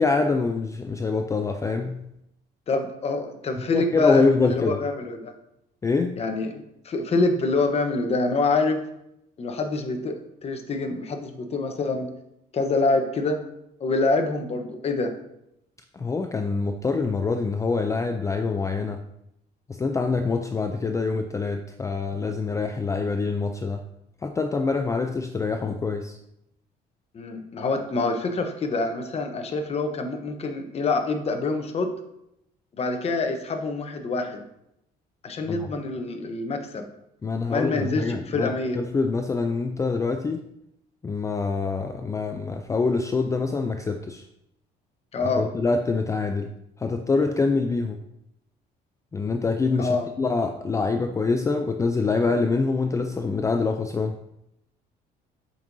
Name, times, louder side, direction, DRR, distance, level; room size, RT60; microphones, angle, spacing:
voice 1, 0.0-2.0 3.7-4.8 5.8-6.2 15.9-19.0 19.7-23.8 24.2-26.2 35.5-35.7 37.2-40.4 41.0-44.2 45.2-46.5 46.8-48.0 49.1-54.2, left 4 dB, 20° left, 6 dB, 0.4 m, -25 dB
voice 2, 2.7-5.3 6.2-8.8 9.4-12.1 12.5-13.4 13.8-15.1 27.1-31.9 32.8-34.4 35.2-36.9 37.4-38.8 45.1-45.5 49.8-50.1, left 3 dB, 40° left, 6 dB, 0.9 m, -26 dB
7.4 x 5.4 x 2.7 m, 0.80 s
cardioid pair, 110°, 17 cm